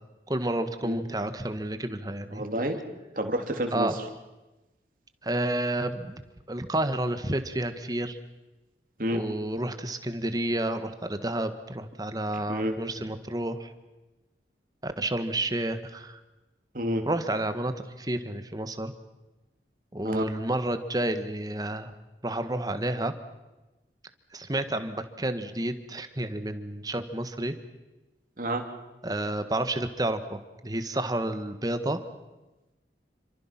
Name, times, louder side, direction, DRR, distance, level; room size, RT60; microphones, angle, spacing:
voice 1, 0.3-2.4 3.7-4.0 5.2-6.2 6.5-8.2 9.1-13.7 14.8-16.2 17.1-18.9 19.9-21.9 22.2-23.1 24.3-27.5 29.0-32.0, right 1 dB, 20° right, 9 dB, 1.5 m, -30 dB
voice 2, 2.3-2.8 3.2-3.9 9.0-9.2 12.5-12.7 16.7-17.0 20.0-20.3 28.4-28.6, right 1 dB, 50° right, 4 dB, 2.9 m, -29 dB
28.0 x 25.0 x 5.9 m, 1.1 s
head